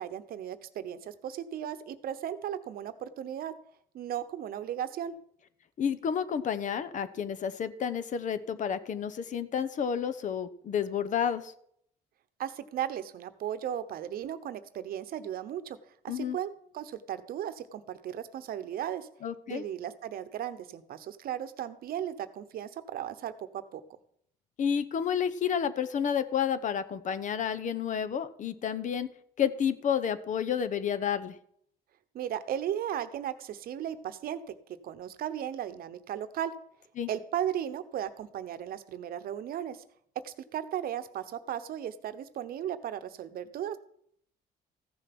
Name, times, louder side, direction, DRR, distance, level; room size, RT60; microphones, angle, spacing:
voice 1, 0.0-3.5 3.9-5.1 12.4-15.8 16.0-19.1 19.5-23.8 32.1-34.4 34.8-36.5 37.1-39.8 40.2-43.8, right 10 dB, 60° right, 11 dB, 0.9 m, -36 dB
voice 2, 5.8-11.5 16.1-16.4 19.2-19.6 24.6-29.1 29.4-31.4 37.0-37.1, left 8 dB, 50° left, 13 dB, 0.9 m, -30 dB
14.5 x 6.8 x 6.1 m, 0.68 s
cardioid pair, 110°, 17 cm